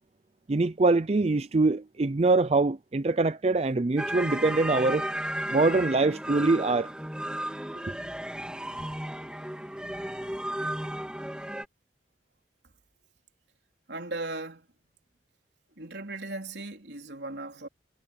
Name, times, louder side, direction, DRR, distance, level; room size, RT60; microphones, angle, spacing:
voice 1, 0.5-5.1 5.5-6.9, right 3 dB, 35° right, 0.5 m, -24 dB
sound 1, 4.0-11.6, right 1 dB, 5° right, 2.6 m, -34 dB
voice 2, 13.9-14.7 15.8-17.7, right 2 dB, 70° right, 3.5 m, -37 dB
head